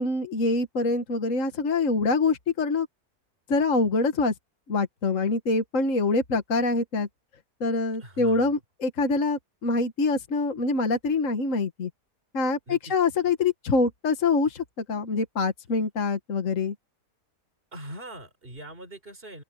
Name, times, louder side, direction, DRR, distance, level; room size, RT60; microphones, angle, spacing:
voice 1, 0.0-2.9 3.5-4.3 4.7-7.1 7.6-11.9 12.3-16.7, left 3 dB, 55° left, 1.9 m, -25 dB
voice 2, 8.0-8.5 12.7-12.9 17.7-19.4, right 1 dB, 35° right, 5.1 m, -42 dB
open air
omnidirectional pair, 1.6 m